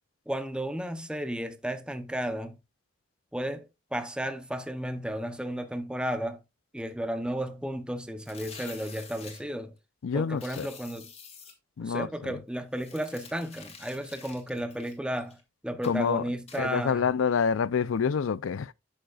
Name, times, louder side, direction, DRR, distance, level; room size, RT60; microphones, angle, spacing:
voice 1, 0.3-2.6 3.3-6.4 6.7-9.7 10.1-11.1 11.8-15.4 15.6-17.1, equal, 5° right, 0.7 m, -33 dB
sound 1, 8.2-9.4 10.4-11.5 12.7-15.4 15.8-16.0 16.5-16.6, left 6 dB, 30° left, 1.8 m, -48 dB
voice 2, 10.0-10.7 11.8-12.1 15.8-16.2 16.6-18.7, left 6 dB, 75° left, 0.4 m, -27 dB
11.5 x 6.4 x 2.3 m
head